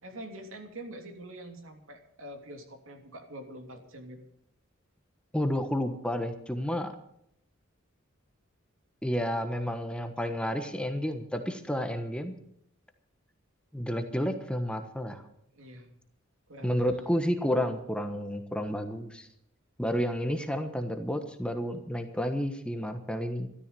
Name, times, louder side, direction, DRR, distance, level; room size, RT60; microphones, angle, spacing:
voice 1, 0.0-4.2 15.5-15.9 16.5-17.1, right 1 dB, 75° right, 4 dB, 3.0 m, -45 dB
voice 2, 5.3-6.9 9.0-12.4 13.7-15.2 16.6-19.3 19.8-23.5, equal, 5° left, 6 dB, 1.2 m, -31 dB
13.5 x 13.0 x 6.9 m, 0.72 s
head